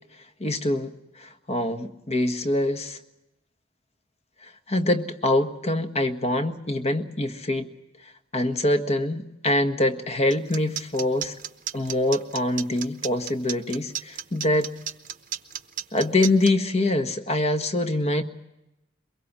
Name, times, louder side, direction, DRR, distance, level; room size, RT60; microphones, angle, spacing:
voice 1, 0.4-3.0 4.4-7.7 8.3-11.4 11.7-14.7 15.9-18.2, left 1 dB, 35° left, 7 dB, 1.5 m, -24 dB
sound 1, 10.3-16.5, right 10 dB, 40° right, 0.9 m, -33 dB
23.0 x 22.0 x 7.3 m, 0.92 s
head